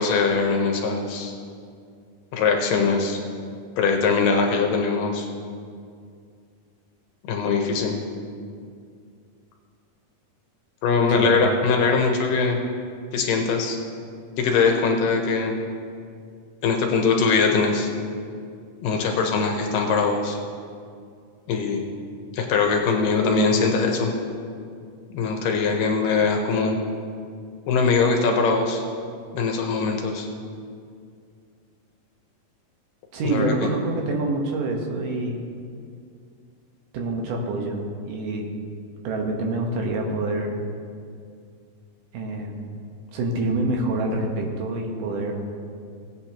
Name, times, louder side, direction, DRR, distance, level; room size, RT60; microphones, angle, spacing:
voice 1, 0.0-1.3 2.3-3.2 3.8-5.3 7.3-7.9 10.8-12.6 13.1-13.8 14.4-15.5 16.6-17.9 18.8-20.4 21.5-21.8 22.3-24.1 25.1-26.8 27.7-28.8 29.3-30.3 33.2-33.7, left 4 dB, 75° left, 2 dB, 2.5 m, -21 dB
voice 2, 33.1-35.5 36.9-38.5 39.0-40.6 42.1-42.7 43.1-45.3, right 2 dB, 70° right, 1 dB, 2.6 m, -26 dB
17.5 x 8.6 x 2.9 m, 2.3 s
omnidirectional pair, 4.1 m